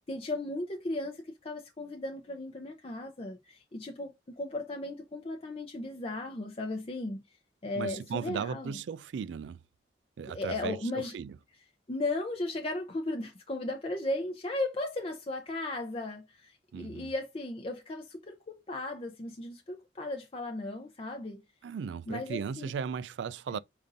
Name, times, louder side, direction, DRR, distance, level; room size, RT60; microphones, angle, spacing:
voice 1, 0.1-7.2 7.6-8.7 10.3-11.1 11.9-21.4 22.1-22.7 23.5-23.6, left 2 dB, 35° left, 0.6 m, -36 dB
voice 2, 7.8-9.6 10.2-11.4 16.7-17.1 21.6-23.6, right 6 dB, 90° right, 0.3 m, -36 dB
5.1 x 2.6 x 3.8 m
head